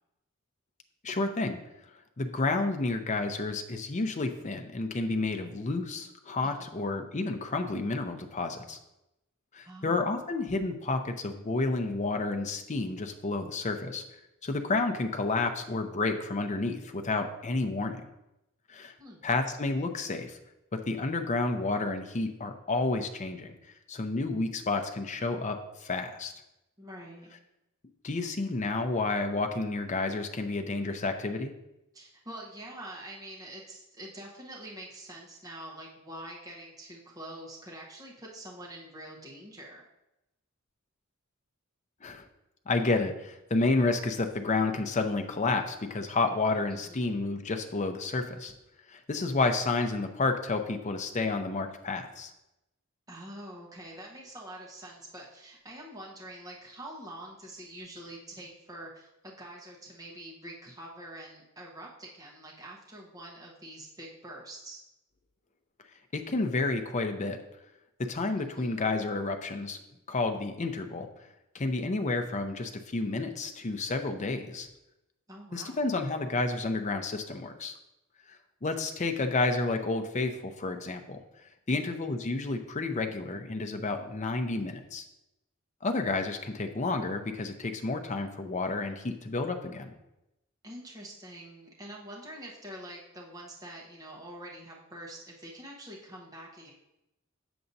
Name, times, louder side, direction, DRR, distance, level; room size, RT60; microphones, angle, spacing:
voice 1, 1.0-1.6 2.2-8.8 9.5-14.0 14.4-18.0 18.7-18.9 19.2-20.4 20.7-23.5 23.9-26.3 28.0-31.5 42.0-42.2 42.7-48.5 48.9-52.3 66.1-67.4 68.0-69.8 70.1-71.1 71.5-74.7 75.5-77.7 78.3-81.2 81.7-85.1 85.8-89.9, left 3 dB, 35° left, 6 dB, 0.6 m, -30 dB
voice 2, 6.4-6.8 9.7-10.2 19.0-19.2 26.8-27.3 31.9-39.8 46.7-47.2 53.1-64.8 68.4-68.8 75.3-75.8 81.7-81.9 90.6-96.7, right 1 dB, 15° right, -3 dB, 1.0 m, -45 dB
7.5 x 6.9 x 2.7 m, 0.90 s
head